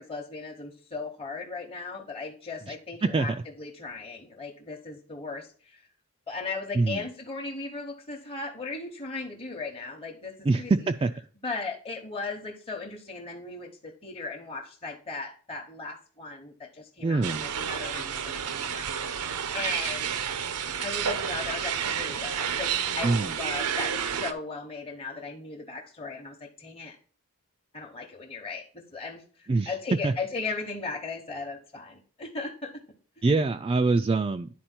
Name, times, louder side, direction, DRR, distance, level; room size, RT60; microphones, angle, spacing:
voice 1, 0.0-5.9 6.3-10.7 11.4-20.1 20.8-27.0 27.7-32.7 33.2-33.3, left 4 dB, 25° left, 0 dB, 1.0 m, -37 dB
voice 2, 3.0-3.4 6.7-7.0 10.4-11.1 17.0-17.4 23.0-23.3 29.5-29.7 30.0-30.1 33.2-34.5, right 3 dB, 25° right, 6 dB, 0.3 m, -24 dB
sound 1, 17.2-24.3, right 8 dB, 90° right, 0.8 m, -30 dB
10.0 x 4.3 x 4.4 m, 0.42 s
head